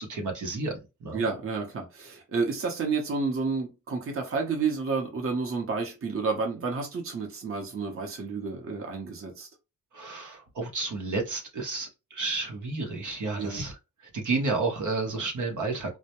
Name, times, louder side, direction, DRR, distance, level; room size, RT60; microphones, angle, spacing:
voice 1, 0.0-1.2 9.9-16.0, right 3 dB, 80° right, 0.8 m, -31 dB
voice 2, 1.1-9.5 13.4-13.6, right 4 dB, 45° right, 0.8 m, -30 dB
2.1 x 2.1 x 2.8 m
wide cardioid pair, 110°, 30 cm